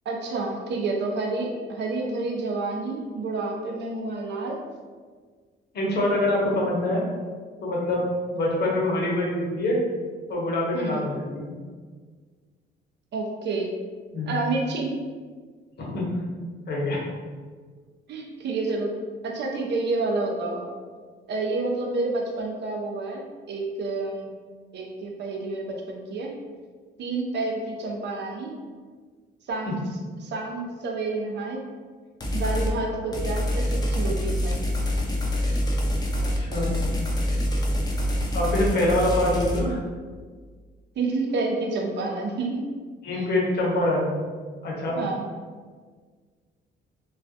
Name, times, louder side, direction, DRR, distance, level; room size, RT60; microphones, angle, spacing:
voice 1, 0.1-4.6 10.7-11.1 13.1-13.7 14.3-15.0 18.1-18.9 19.2-20.7 21.3-24.3 24.7-26.4 27.0-28.6 29.5-29.8 30.2-31.6 32.3-34.6 41.0-42.7 43.1-43.3 45.0-45.3, right 3 dB, 60° right, 0 dB, 0.5 m, -29 dB
voice 2, 5.7-7.0 7.6-8.1 8.3-9.8 10.3-11.6 14.1-14.4 15.8-16.2 16.7-17.0 29.7-29.8 36.4-36.8 38.3-39.8 43.0-44.1 44.6-45.0, left 1 dB, 55° left, -4 dB, 0.8 m, -25 dB
sound 1, 32.2-32.7 33.1-39.6, left 1 dB, 20° left, 0.4 m, -26 dB
2.3 x 2.1 x 2.7 m, 1.6 s
cardioid pair, 90°, 20 cm